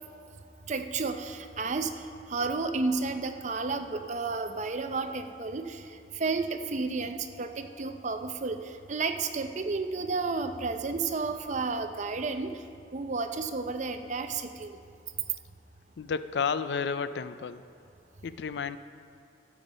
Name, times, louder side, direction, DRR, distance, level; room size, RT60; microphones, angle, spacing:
voice 1, 0.7-5.8 6.1-8.6 8.9-12.5 12.9-14.8, right 3 dB, 40° right, 7 dB, 0.6 m, -32 dB
sound 1, 10.0-11.9, left 1 dB, 50° left, 0.9 m, -53 dB
voice 2, 16.0-17.6 18.2-18.8, left 6 dB, 70° left, 13 dB, 0.4 m, -31 dB
13.5 x 7.2 x 5.1 m, 2.5 s
head